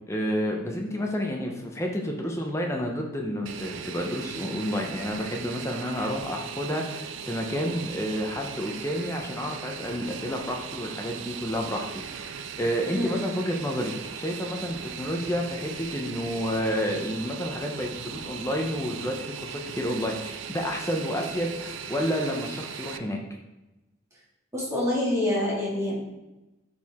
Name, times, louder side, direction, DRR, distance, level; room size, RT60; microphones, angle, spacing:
voice 1, 0.1-23.2, equal, 15° left, 1 dB, 0.7 m, -30 dB
Fixed-wing aircraft airplane, 3.5-23.0, right 7 dB, 65° right, 0.4 m, -38 dB
voice 2, 24.5-26.0, left 1 dB, 15° right, -6 dB, 2.2 m, -26 dB
12.0 x 4.6 x 3.6 m, 1.0 s
head